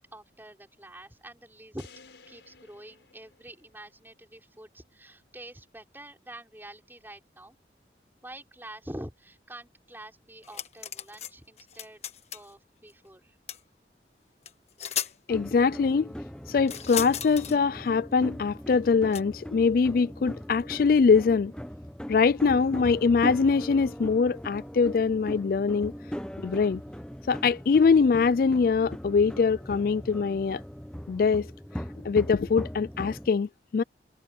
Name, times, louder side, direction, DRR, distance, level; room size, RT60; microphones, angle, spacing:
voice 1, 0.0-1.9 2.3-7.6 8.2-12.0 12.3-13.3, right 1 dB, 10° right, 5.0 m, -46 dB
sound 1, 1.8-4.1, left 5 dB, 90° left, 5.0 m, -55 dB
sound 2, 10.4-11.3 11.6-12.5 13.5-13.6 14.5-14.6 14.8-15.1 16.7-17.6 19.1-19.2, left 9 dB, 40° left, 1.3 m, -35 dB
voice 2, 15.3-16.1 16.5-21.5 22.1-25.9 26.4-26.8 27.3-30.6 31.1-31.5 32.0-33.8, left 5 dB, 55° left, 0.3 m, -23 dB
sound 3, 15.3-33.3, equal, 5° left, 0.9 m, -39 dB
head